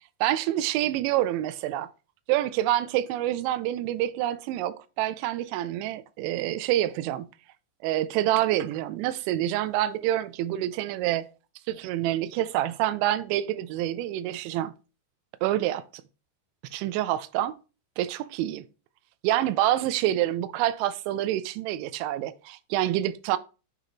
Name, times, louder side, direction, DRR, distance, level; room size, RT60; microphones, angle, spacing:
voice 1, 0.2-1.9 2.3-7.3 7.8-11.3 11.7-14.7 15.4-15.8 16.7-17.6 18.0-18.6 19.2-23.4, right 13 dB, 85° right, 2.8 m, -27 dB
9.0 x 3.9 x 2.8 m
omnidirectional pair, 5.3 m